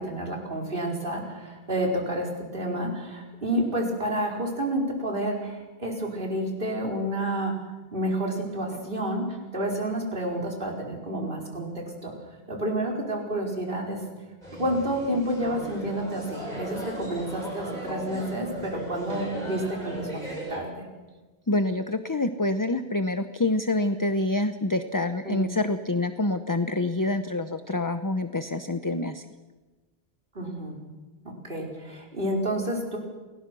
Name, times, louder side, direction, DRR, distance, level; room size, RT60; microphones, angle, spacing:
voice 1, 0.0-7.5 7.9-12.1 12.5-14.0 14.6-20.2 20.5-20.9 25.2-25.6 30.3-30.7 31.2-33.0, right 1 dB, 55° right, 0 dB, 4.9 m, -30 dB
sound 1, 14.4-20.6, right 1 dB, 40° right, 7.2 m, -37 dB
voice 2, 21.5-29.2, left 2 dB, 20° left, 9 dB, 0.8 m, -26 dB
29.5 x 20.5 x 6.2 m, 1.2 s
omnidirectional pair, 1.1 m